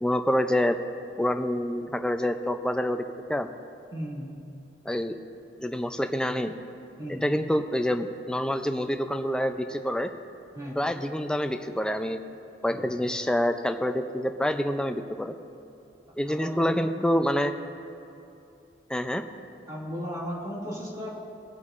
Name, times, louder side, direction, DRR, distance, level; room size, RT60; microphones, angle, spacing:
voice 1, 0.0-0.8 1.2-3.5 4.9-5.1 5.6-6.5 7.1-10.1 10.8-12.2 12.6-15.4 16.2-17.5 18.9-19.2, equal, 5° left, 7 dB, 0.4 m, -27 dB
voice 2, 3.9-4.3 7.0-7.2 10.5-10.8 12.7-13.0 16.3-16.9 19.7-21.1, equal, 20° right, -6 dB, 2.4 m, -35 dB
24.0 x 8.1 x 2.5 m, 2.7 s
head